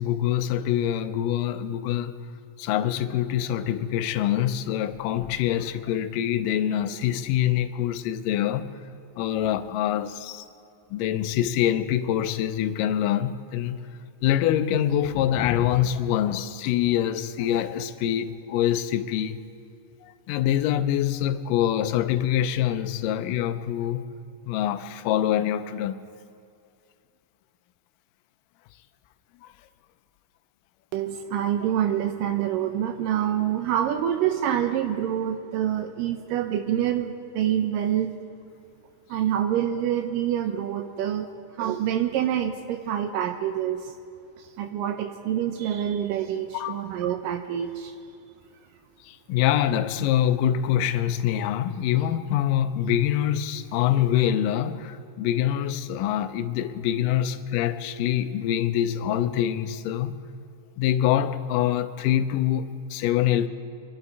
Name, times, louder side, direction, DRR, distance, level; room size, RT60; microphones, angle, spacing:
voice 1, 0.0-2.1 2.6-8.7 9.2-10.5 10.9-13.8 14.2-19.4 20.0-24.0 24.5-26.0 29.4-29.5 46.5-46.8 49.0-60.1 60.8-63.5, left 11 dB, 80° left, 2.1 m, -25 dB
voice 2, 30.9-38.1 39.1-41.3 41.6-43.9 44.6-47.9, right 10 dB, 80° right, 2.1 m, -26 dB
25.0 x 11.5 x 4.6 m
omnidirectional pair, 4.2 m